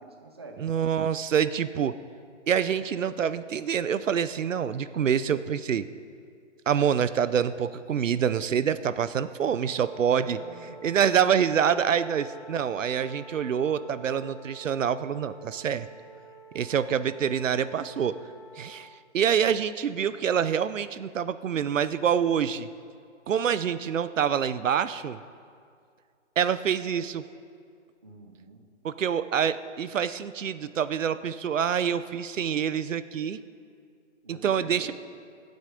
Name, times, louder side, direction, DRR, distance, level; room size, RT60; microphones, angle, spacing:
voice 1, 0.0-0.7 10.2-10.9 28.0-28.6 34.2-34.9, right 3 dB, 20° right, 3 dB, 0.6 m, -46 dB
voice 2, 0.6-1.9 2.5-5.9 6.7-10.4 10.8-15.9 16.5-18.2 18.6-18.9 19.1-22.7 23.3-25.2 26.4-27.2 28.8-33.4 34.3-34.9, right 8 dB, 85° right, 14 dB, 0.7 m, -26 dB
Wind instrument woodwind instrument, 9.6-18.8, right 3 dB, ahead, 1.7 m, -49 dB
23.0 x 8.1 x 5.1 m, 2.2 s
hypercardioid pair, 175°, 37 cm